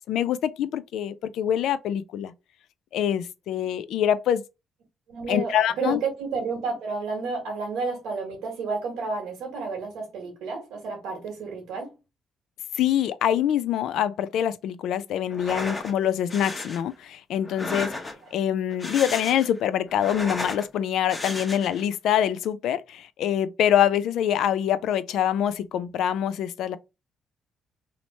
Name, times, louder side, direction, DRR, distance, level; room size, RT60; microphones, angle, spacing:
voice 1, 0.1-2.3 2.9-4.4 5.3-6.0 12.8-17.9 18.3-26.8, left 10 dB, 80° left, 0.3 m, -25 dB
voice 2, 5.1-11.9 18.2-18.3, right 4 dB, 85° right, 1.3 m, -31 dB
sound 1, 15.3-15.9 16.3-16.8 17.4-18.3 18.7-19.6 19.9-20.7 21.1-21.8, left 2 dB, 20° left, 0.8 m, -34 dB
3.0 x 2.1 x 4.0 m
cardioid pair, 90°, 0 cm